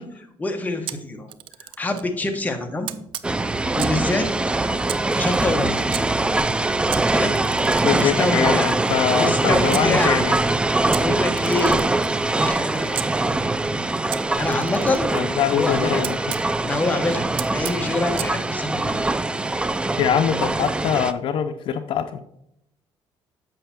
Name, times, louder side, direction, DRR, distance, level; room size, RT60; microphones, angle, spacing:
voice 1, 0.4-1.3 1.6-2.9 3.7-4.2 5.2-5.8 7.1-7.4 7.7-8.8 9.2-10.2 11.0-11.8 12.4-12.9 13.4-13.9 14.2-15.1 15.5-16.1 16.6-19.0, left 2 dB, 15° left, 5 dB, 1.1 m, -26 dB
Camera, 0.9-2.1 2.8-4.1 4.8-6.0 6.9-9.9 10.9-13.1 14.1-16.5 17.4-18.3, right 12 dB, 70° right, 0.5 m, -36 dB
sound 1, 3.2-21.1, right 2 dB, 10° right, 0.3 m, -23 dB
voice 2, 7.8-10.3 15.1-16.4 20.0-22.2, left 8 dB, 65° left, 9 dB, 0.5 m, -23 dB
7.8 x 5.6 x 4.3 m, 0.77 s
cardioid pair, 125°, 9 cm